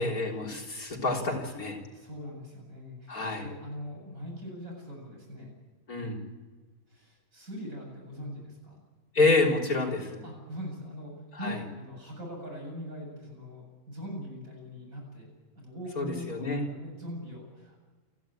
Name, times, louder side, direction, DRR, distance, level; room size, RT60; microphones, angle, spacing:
voice 1, 0.0-1.8 3.1-3.5 5.9-6.2 9.1-10.2 11.4-11.6 16.0-16.6, left 3 dB, 80° left, -1 dB, 4.1 m, -28 dB
voice 2, 1.9-5.5 6.9-8.8 10.2-11.1 11.4-15.3 15.5-17.8, equal, 65° right, 0 dB, 8.5 m, -41 dB
29.5 x 12.0 x 8.9 m, 1.3 s
omnidirectional pair, 1.6 m